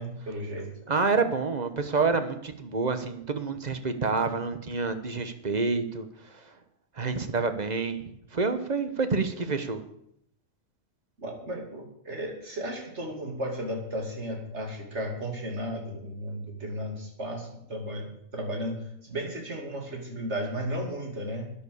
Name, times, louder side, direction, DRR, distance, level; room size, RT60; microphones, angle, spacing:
voice 1, 0.0-0.7 11.2-21.5, equal, 55° right, 2 dB, 2.8 m, -34 dB
voice 2, 0.9-6.1 6.3-6.4 7.0-9.8, right 4 dB, 35° right, 9 dB, 1.1 m, -28 dB
11.5 x 10.0 x 6.9 m, 0.73 s
omnidirectional pair, 1.5 m